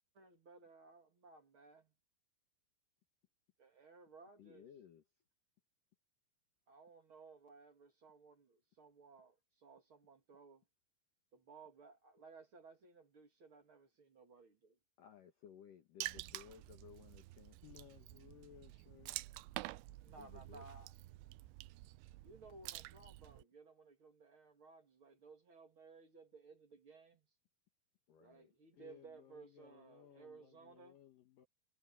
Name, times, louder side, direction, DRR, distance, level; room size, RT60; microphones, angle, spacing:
voice 1, 0.1-1.9 3.6-4.7 6.7-10.6 11.3-14.8 20.0-20.9 22.2-27.3 28.2-31.0, right 4 dB, 40° right, 1.9 m, -59 dB
voice 2, 4.4-5.1 15.0-17.6 19.9-20.7 28.1-28.5, left 8 dB, 55° left, 2.7 m, -59 dB
Water / Splash splatter, 16.0-23.4, right 19 dB, 80° right, 2.8 m, -49 dB
voice 3, 17.6-19.2 28.8-31.5, left 11 dB, 85° left, 1.9 m, -61 dB
omnidirectional pair, 5.8 m